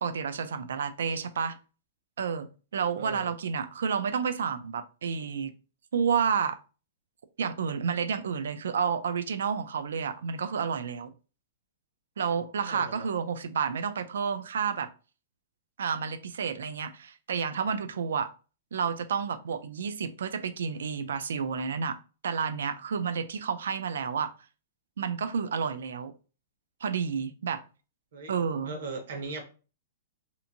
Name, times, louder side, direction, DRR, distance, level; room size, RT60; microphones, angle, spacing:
voice 1, 0.0-1.6 2.2-5.5 5.9-6.6 7.4-11.1 12.2-14.9 15.8-18.3 18.7-22.0 22.2-24.3 25.0-26.1 26.8-27.6 28.3-28.8, right 6 dB, 80° right, 0.4 m, -30 dB
voice 2, 3.0-3.3 12.6-13.1 28.1-28.3 28.6-29.4, right 3 dB, 55° right, 0.7 m, -38 dB
2.9 x 2.5 x 2.5 m
hypercardioid pair, 180°, 0 cm